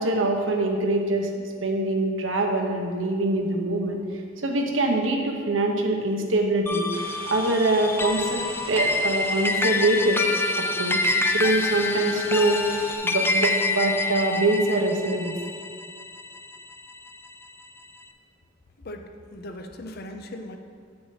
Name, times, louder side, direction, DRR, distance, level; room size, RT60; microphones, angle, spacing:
voice 1, 0.0-4.0 4.4-6.9 7.3-8.4 8.7-10.2 10.8-12.6 13.0-15.3, right 2 dB, 80° right, 2 dB, 1.0 m, -24 dB
sound 1, 6.7-17.3, left 2 dB, 10° left, 0.3 m, -27 dB
sound 2, 6.9-13.0, right 2 dB, 30° right, 0.8 m, -42 dB
voice 2, 18.8-20.6, left 1 dB, 55° left, 5 dB, 0.6 m, -39 dB
8.7 x 5.9 x 4.1 m, 2.2 s
head